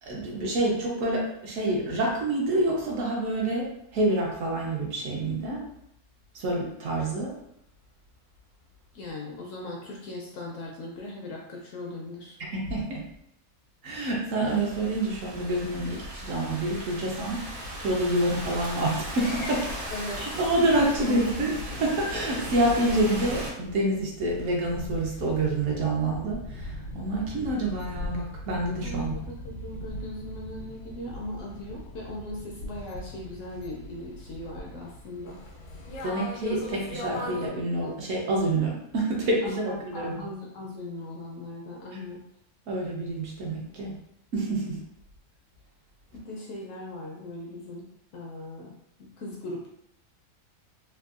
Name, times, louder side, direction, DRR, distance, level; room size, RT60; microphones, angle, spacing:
voice 1, 0.0-3.7 3.9-5.6 6.3-7.3 12.5-13.0 13.8-17.4 17.8-19.7 20.2-21.5 21.8-29.2 36.0-40.2 42.7-44.0 44.3-44.8, right 1 dB, 65° right, -2 dB, 1.0 m, -27 dB
voice 2, 8.9-12.4 19.9-20.4 21.0-21.5 28.8-35.4 39.4-42.2 46.1-47.9 48.1-48.7 49.0-49.7, left 1 dB, 65° left, -2 dB, 0.8 m, -39 dB
Thunderstorm / Rain, 14.5-23.5, equal, 90° right, 1.4 m, -37 dB
sound 1, 19.2-37.5, left 1 dB, 85° left, 1.2 m, -40 dB
3.5 x 2.2 x 2.4 m, 0.75 s
omnidirectional pair, 1.6 m